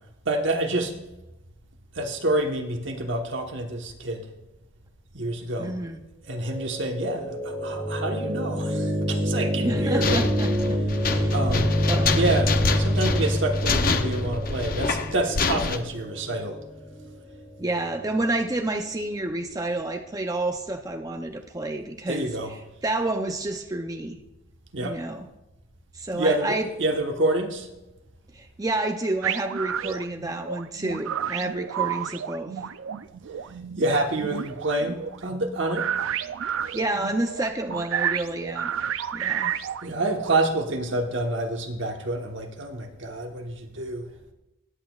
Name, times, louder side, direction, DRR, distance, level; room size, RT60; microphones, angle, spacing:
voice 1, 0.2-0.9 1.9-4.3 5.1-5.7 6.3-10.2 11.3-11.8 12.2-16.6 22.1-22.5 24.7-25.0 26.1-27.7 33.8-35.9 39.8-44.1, right 2 dB, 65° right, 3 dB, 1.3 m, -27 dB
voice 2, 5.6-6.0 9.6-11.4 11.8-12.2 17.6-24.2 24.8-25.3 25.9-26.7 28.3-32.6 36.7-38.7 39.1-39.5, right 2 dB, 20° right, 4 dB, 0.5 m, -29 dB
sound 1, 6.3-18.4, equal, 20° left, 3.3 m, -27 dB
sound 2, 9.6-15.8, left 4 dB, 45° left, 0.6 m, -27 dB
sound 3, 29.2-40.3, right 9 dB, 80° right, 0.4 m, -31 dB
19.5 x 8.2 x 2.4 m, 0.98 s
head